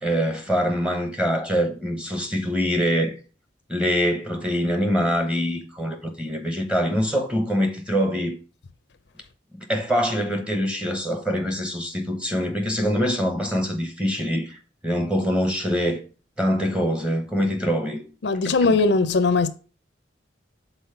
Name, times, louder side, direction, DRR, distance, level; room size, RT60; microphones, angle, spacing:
voice 1, 0.0-3.2 3.7-8.4 9.5-14.6 14.8-16.0 16.4-18.0 18.4-18.5, equal, 5° right, 1.0 m, -24 dB
voice 2, 18.2-19.5, left 3 dB, 60° left, 0.5 m, -19 dB
5.6 x 4.0 x 5.7 m
head